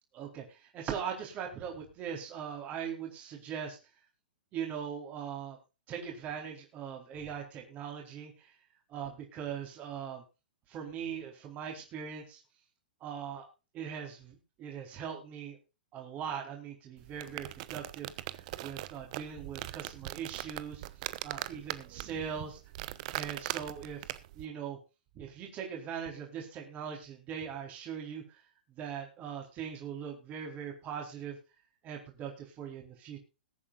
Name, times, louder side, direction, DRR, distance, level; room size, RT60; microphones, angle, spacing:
voice 1, 0.1-3.8 4.5-5.6 5.9-8.5 8.9-10.2 10.7-12.4 13.0-13.5 13.7-15.6 15.9-18.2 18.6-20.8 21.2-22.6 23.1-24.1 24.3-24.8 25.1-28.4 28.8-31.4 31.8-33.2, right 8 dB, 30° right, 0 dB, 4.1 m, -40 dB
sound 1, 17.0-24.5, right 16 dB, 50° right, 1.0 m, -41 dB
21.5 x 8.9 x 2.5 m, 0.29 s
hypercardioid pair, 120°, 5 cm